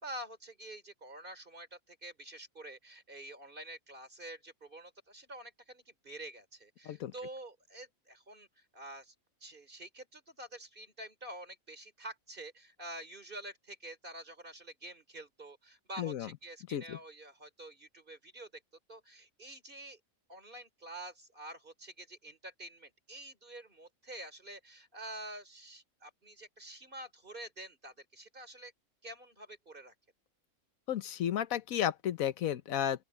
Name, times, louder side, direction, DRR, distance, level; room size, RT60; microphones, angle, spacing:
voice 1, 0.0-8.5 8.7-9.1 9.4-18.6 18.9-20.0 20.3-28.7 29.0-29.9, right 1 dB, 35° right, 3.6 m, -48 dB
voice 2, 16.0-16.3 16.7-17.0 30.9-33.0, left 10 dB, 75° left, 1.3 m, -33 dB
open air
omnidirectional pair, 1.5 m